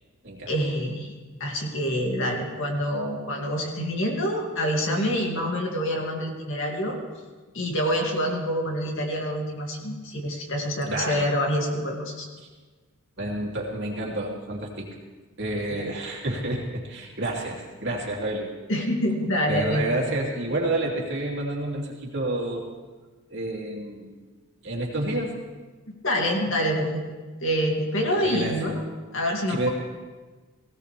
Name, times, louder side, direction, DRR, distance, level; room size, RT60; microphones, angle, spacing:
voice 1, 0.5-1.1 1.4-7.0 7.5-12.3 18.7-19.9 26.0-27.0 27.4-28.8 29.1-29.7, equal, 60° left, 1 dB, 2.4 m, -26 dB
voice 2, 10.8-11.2 13.2-14.9 15.4-18.5 19.4-22.7 23.3-24.1 24.6-25.3 28.2-28.7 29.5-29.7, right 1 dB, 55° right, -2 dB, 2.8 m, -29 dB
19.0 x 16.5 x 3.4 m, 1.3 s
head